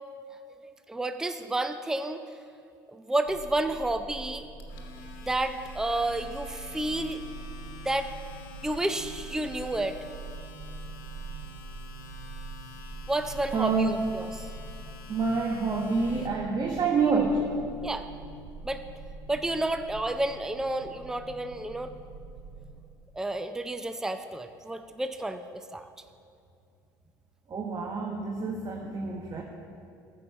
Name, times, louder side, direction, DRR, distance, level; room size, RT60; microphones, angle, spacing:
voice 1, 0.9-2.3 2.9-4.5 5.3-7.2 7.8-8.1 8.6-10.0 13.1-14.5 17.8-18.1 18.6-18.8 19.3-21.9 23.1-25.9, right 1 dB, 5° right, 9 dB, 0.5 m, -31 dB
sound 1, 3.2-22.8, right 3 dB, 70° right, 1.0 m, -44 dB
Domestic sounds home sounds, 4.4-16.3, left 5 dB, 70° left, 1.2 m, -49 dB
voice 2, 13.5-14.0 15.1-17.5 27.5-29.4, right 4 dB, 35° right, 1 dB, 1.3 m, -27 dB
13.5 x 5.5 x 6.8 m, 2.4 s
hypercardioid pair, 60°, 11 cm